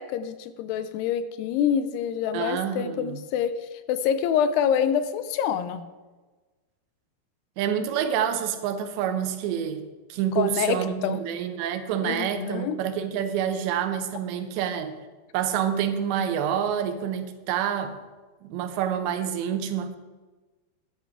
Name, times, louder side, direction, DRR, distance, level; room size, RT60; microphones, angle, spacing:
voice 1, 0.0-5.9 10.3-11.3 12.0-12.8, left 8 dB, 80° left, 12 dB, 2.6 m, -26 dB
voice 2, 2.3-3.2 7.6-15.0 15.3-18.0 18.4-20.0, right 9 dB, 90° right, 8 dB, 3.2 m, -27 dB
12.5 x 10.5 x 4.7 m, 1.3 s
omnidirectional pair, 4.9 m